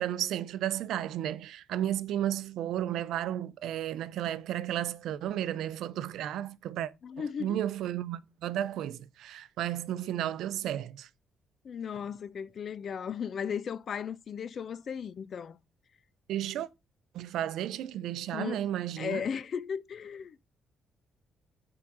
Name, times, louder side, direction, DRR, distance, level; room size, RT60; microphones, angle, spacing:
voice 1, 0.0-11.1 16.3-16.7 17.1-19.2, right 12 dB, 80° right, 0.6 m, -33 dB
voice 2, 7.0-7.6 11.6-15.6 18.3-18.6 19.0-20.4, left 7 dB, 55° left, 0.5 m, -36 dB
6.0 x 4.8 x 5.9 m
cardioid pair, 90°, 0 cm